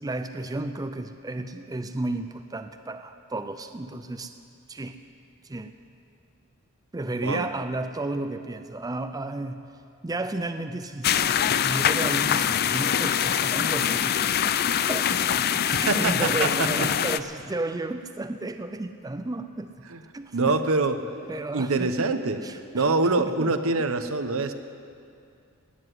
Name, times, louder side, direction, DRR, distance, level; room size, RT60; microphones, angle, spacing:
voice 1, 0.0-4.3 4.7-5.0 5.4-5.7 6.9-9.6 10.0-14.3 14.8-19.7 20.1-20.6 21.3-22.1 22.4-22.9 23.2-23.5, right 2 dB, 15° right, 8 dB, 0.4 m, -33 dB
sound 1, 11.0-17.2, left 9 dB, 45° left, 0.4 m, -24 dB
voice 2, 15.7-16.9 19.9-20.0 20.3-21.0 21.5-22.4 22.7-24.5, right 3 dB, 70° right, 9 dB, 0.9 m, -25 dB
18.0 x 7.9 x 9.3 m, 2.4 s
head